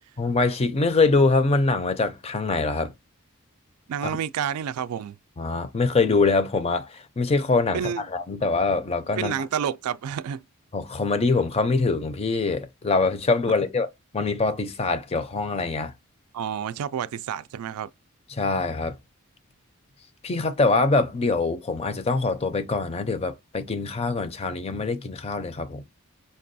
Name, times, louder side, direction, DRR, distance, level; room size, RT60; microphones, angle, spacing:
voice 1, 0.2-2.9 4.0-4.2 5.4-9.4 10.7-13.9 14.1-15.9 18.3-19.0 20.2-25.8, left 3 dB, 25° left, 0.4 m, -24 dB
voice 2, 3.9-5.2 7.7-8.0 9.2-10.4 16.3-17.9, right 8 dB, 85° right, 0.3 m, -29 dB
5.2 x 2.2 x 2.6 m
head